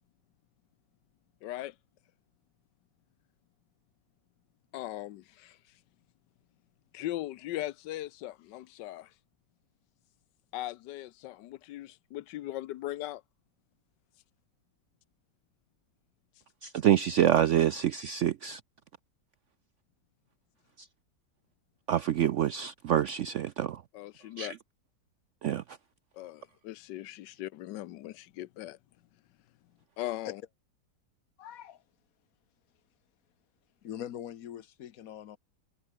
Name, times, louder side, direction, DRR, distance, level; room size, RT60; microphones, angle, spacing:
voice 1, 1.4-1.8 4.7-5.6 6.9-9.1 10.5-13.2 23.9-24.5 26.1-28.8 30.0-30.4, left 14 dB, 85° left, 1.3 m, -39 dB
voice 2, 16.6-18.6 20.8-20.9 21.9-23.8 24.4-24.5 25.4-25.8, right 10 dB, 70° right, 0.7 m, -27 dB
voice 3, 31.4-31.8 33.8-35.4, left 10 dB, 60° left, 1.2 m, -42 dB
omnidirectional pair, 1.8 m